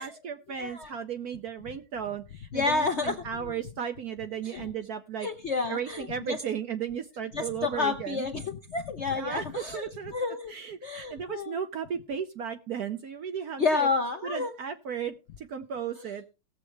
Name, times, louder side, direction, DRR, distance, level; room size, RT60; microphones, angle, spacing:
voice 1, 0.0-5.3 5.7-8.3 9.1-10.1 10.5-13.9 14.2-16.3, right 8 dB, 65° right, 9 dB, 1.0 m, -35 dB
voice 2, 0.6-0.9 2.5-3.2 4.4-4.7 5.2-6.4 7.3-10.5 10.8-11.6 13.6-14.5, left 4 dB, 55° left, 7 dB, 0.7 m, -30 dB
18.0 x 7.4 x 3.3 m, 0.31 s
omnidirectional pair, 2.2 m